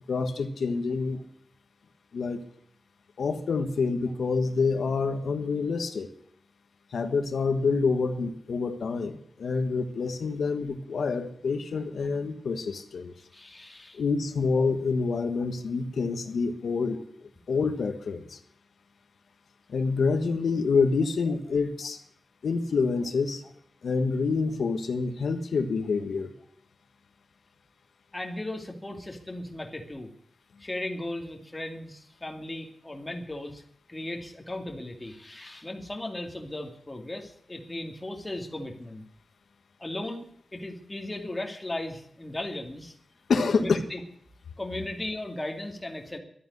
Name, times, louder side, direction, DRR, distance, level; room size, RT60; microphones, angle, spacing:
voice 1, 0.1-1.2 2.1-2.4 3.2-6.1 6.9-13.1 13.9-18.4 19.7-22.0 22.4-23.4 23.8-26.3 43.3-43.8, left 4 dB, 90° left, 7 dB, 1.4 m, -27 dB
voice 2, 13.3-14.0 28.1-30.1 30.6-33.6 33.9-39.0 39.8-42.9 43.5-44.0 44.6-46.2, left 1 dB, 15° left, 3 dB, 2.4 m, -36 dB
12.5 x 9.5 x 9.8 m, 0.68 s
wide cardioid pair, 150°, 0 cm